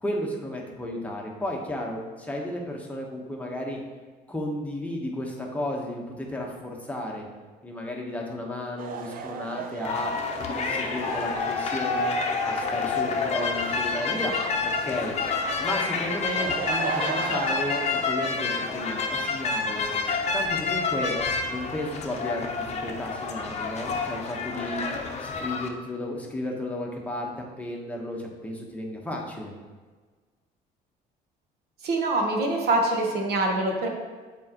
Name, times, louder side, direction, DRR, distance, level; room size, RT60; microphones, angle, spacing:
voice 1, 0.0-3.8 4.3-7.3 7.6-10.1 10.5-12.2 12.4-14.3 14.6-15.2 15.6-19.9 20.3-21.1 21.5-24.8 25.2-29.5, left 1 dB, 10° left, -1 dB, 1.1 m, -33 dB
sound 1, 8.8-18.1, right 6 dB, 55° right, 0.5 m, -37 dB
sound 2, 9.8-25.7, left 4 dB, 40° left, 0.7 m, -28 dB
voice 2, 31.8-33.9, right 2 dB, 70° right, 1 dB, 1.1 m, -24 dB
7.4 x 4.4 x 2.9 m, 1.4 s
cardioid pair, 110°, 17 cm